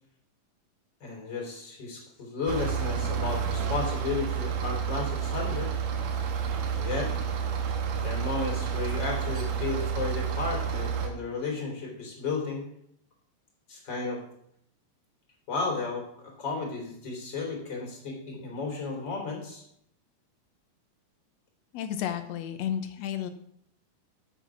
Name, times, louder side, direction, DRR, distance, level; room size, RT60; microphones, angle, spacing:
voice 1, 1.0-5.7 6.7-7.1 8.0-12.6 13.7-14.2 15.5-19.6, left 4 dB, 35° left, 0 dB, 3.7 m, -33 dB
sound 1, 2.5-11.1, right 7 dB, 80° right, 2.8 m, -30 dB
voice 2, 21.7-23.3, left 10 dB, 65° left, 8 dB, 1.9 m, -32 dB
8.9 x 8.3 x 6.1 m, 0.70 s
omnidirectional pair, 3.8 m